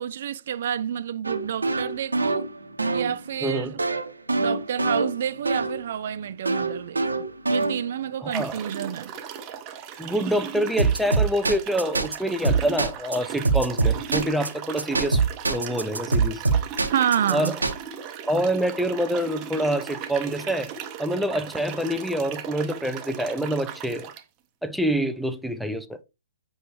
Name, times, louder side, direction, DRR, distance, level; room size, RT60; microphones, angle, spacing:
voice 1, 0.0-2.5 2.9-3.8 4.4-9.1 16.9-17.5, right 9 dB, 50° right, 0.5 m, -29 dB
sound 1, 1.2-5.8 6.5-8.1 10.8-12.2 12.4-13.2 13.4-14.5 14.8-17.7, right 3 dB, 80° right, 1.2 m, -24 dB
voice 2, 3.4-3.7 8.2-8.6 10.0-16.4 17.3-17.6 18.3-20.7 21.0-24.1 24.6-26.0, right 1 dB, ahead, 0.6 m, -26 dB
sound 2, 7.5-7.7 8.3-24.2, right 8 dB, 30° right, 1.0 m, -37 dB
8.0 x 6.2 x 3.3 m
figure-of-eight pair, 120°, 0 cm